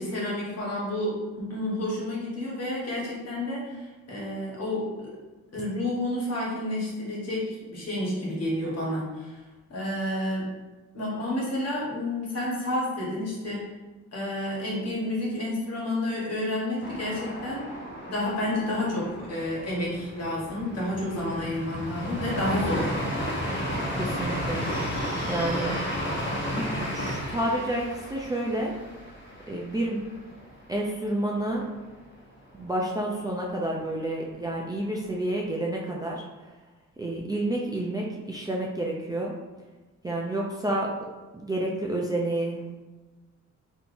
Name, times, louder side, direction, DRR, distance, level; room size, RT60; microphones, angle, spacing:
voice 1, 0.0-5.1 5.5-9.4 9.7-10.5 10.9-13.6 14.1-17.7 18.0-22.9, left 1 dB, 55° left, -5 dB, 1.3 m, -30 dB
sound 1, 16.8-30.5 30.9-31.0 31.3-31.9, equal, 40° left, 0.9 m, -33 dB
voice 2, 23.9-24.6 25.3-25.8 26.5-28.7 29.5-30.0 30.7-31.7 32.5-36.2 37.0-39.3 40.0-40.9 41.4-42.6, right 1 dB, 15° right, -2 dB, 0.4 m, -29 dB
3.5 x 2.8 x 2.6 m, 1.2 s
cardioid pair, 100°, 30 cm